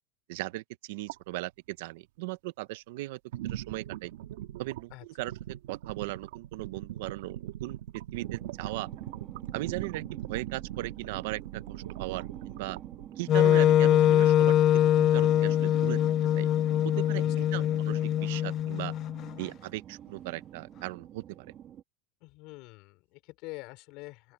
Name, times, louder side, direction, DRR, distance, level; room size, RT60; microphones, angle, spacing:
voice 1, 0.3-4.1 4.6-4.9 5.2-5.3 5.7-7.8 8.1-8.9 9.5-11.6 12.0-12.8 13.2-16.0 16.3-16.5 17.0-18.9 19.4-21.5, right 19 dB, 60° right, 0.7 m, -38 dB
sound 1, 1.1-1.2 3.3-13.1 15.0-15.7 16.5-16.6 17.1-17.3, right 13 dB, 75° right, 2.0 m, -40 dB
sound 2, 8.2-21.8, right 10 dB, 25° right, 2.0 m, -47 dB
Wind instrument woodwind instrument, 13.3-19.3, left 11 dB, 30° left, 0.3 m, -23 dB
voice 2, 17.2-17.8 22.2-24.3, left 24 dB, 45° left, 5.0 m, -46 dB
open air
supercardioid pair, 175°, 0 cm